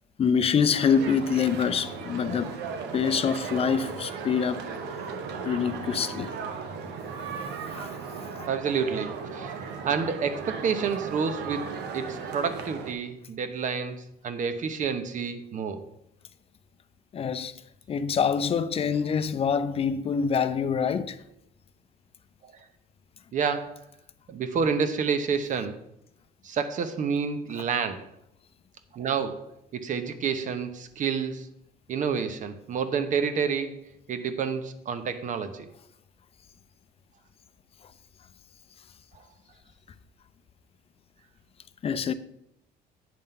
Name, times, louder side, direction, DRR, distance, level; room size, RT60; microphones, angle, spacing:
voice 1, 0.2-2.6 2.9-4.7 5.4-6.3 7.6-7.9 8.3-8.5 17.1-17.5 17.9-21.2 41.8-42.1, left 6 dB, 35° left, 0.5 m, -25 dB
sound 1, 0.7-12.9, right 5 dB, 85° right, 0.9 m, -36 dB
voice 2, 8.5-15.8 22.4-22.5 23.3-23.8 24.3-25.8 26.4-28.1 28.9-29.4 29.7-31.5 31.9-33.8 34.1-35.7, right 6 dB, 50° right, 0.8 m, -29 dB
9.3 x 3.7 x 5.5 m
cardioid pair, 110°, 17 cm